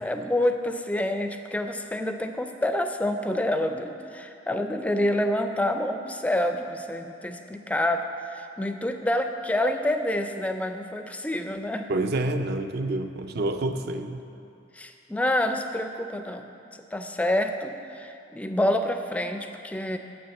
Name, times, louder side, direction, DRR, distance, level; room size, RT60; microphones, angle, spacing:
voice 1, 0.0-11.9 14.7-16.4 16.9-20.0, left 1 dB, 5° left, 6 dB, 0.4 m, -27 dB
voice 2, 11.9-14.2, right 2 dB, 55° right, 8 dB, 0.5 m, -28 dB
7.0 x 6.4 x 7.6 m, 2.6 s
head